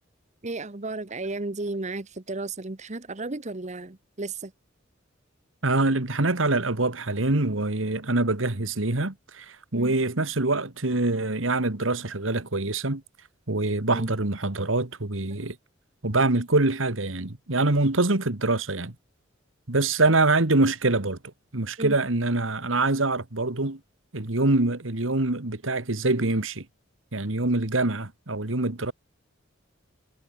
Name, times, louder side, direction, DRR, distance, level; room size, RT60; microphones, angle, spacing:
voice 1, 0.4-4.5 9.7-10.0 13.9-14.2 15.3-15.4 21.8-22.0, right 2 dB, 35° right, 1.1 m, -34 dB
voice 2, 5.6-13.0 13.5-15.6 16.0-19.0 19.7-21.2 21.5-23.8 24.1-26.7 27.1-28.9, right 2 dB, 85° right, 2.0 m, -25 dB
head